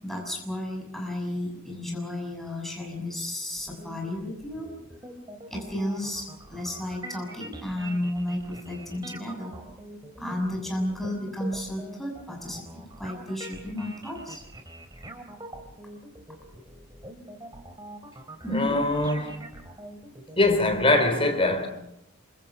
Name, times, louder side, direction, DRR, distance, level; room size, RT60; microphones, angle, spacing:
voice 1, 0.0-4.7 5.5-9.5 10.2-12.6 13.0-14.4 18.4-18.8, left 1 dB, ahead, 6.7 m, -32 dB
sound 1, 3.6-20.9, right 1 dB, 20° right, 3.4 m, -44 dB
voice 2, 18.5-19.4 20.3-21.7, left 2 dB, 25° left, 3.5 m, -23 dB
28.0 x 26.0 x 6.1 m
head